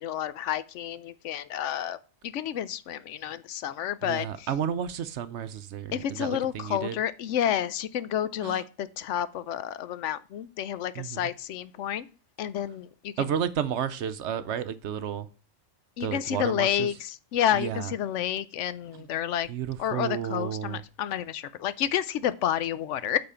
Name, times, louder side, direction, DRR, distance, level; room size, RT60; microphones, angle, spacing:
voice 1, 0.0-2.0 2.2-4.5 5.9-12.1 12.4-13.3 16.0-19.5 19.8-23.2, left 10 dB, 70° left, 0.9 m, -30 dB
voice 2, 4.0-7.0 8.4-8.6 10.9-11.3 13.2-15.3 16.0-16.9 17.5-17.9 18.9-19.0 19.5-20.8, right 9 dB, 70° right, 0.9 m, -32 dB
8.6 x 4.0 x 5.6 m
omnidirectional pair, 1.3 m